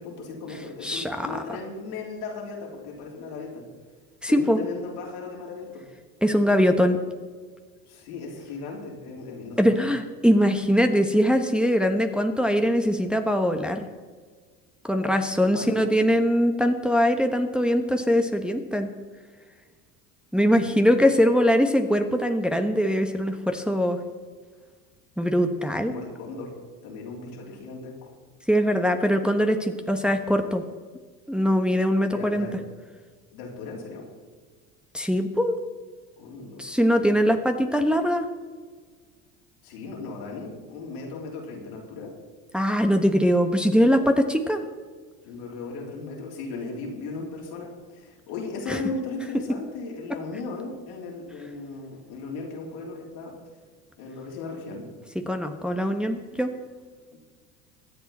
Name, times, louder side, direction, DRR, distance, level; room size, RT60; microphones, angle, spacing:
voice 1, 0.0-3.6 4.3-5.9 7.9-9.9 15.5-16.0 20.3-20.8 25.9-26.6 26.8-28.1 32.1-32.6 33.3-34.1 36.2-37.1 39.6-42.1 45.2-53.3 54.0-54.9 57.1-57.2, left 3 dB, 75° left, -2 dB, 3.7 m, -37 dB
voice 2, 0.8-1.4 4.2-4.6 6.2-7.0 9.6-13.8 14.8-18.9 20.3-24.0 25.2-25.9 28.5-30.6 31.3-32.5 34.9-35.6 36.6-38.3 42.5-44.6 48.7-48.8 55.3-56.5, equal, ahead, 5 dB, 1.2 m, -22 dB
22.5 x 8.2 x 4.3 m, 1.5 s
hypercardioid pair, 70°, 44 cm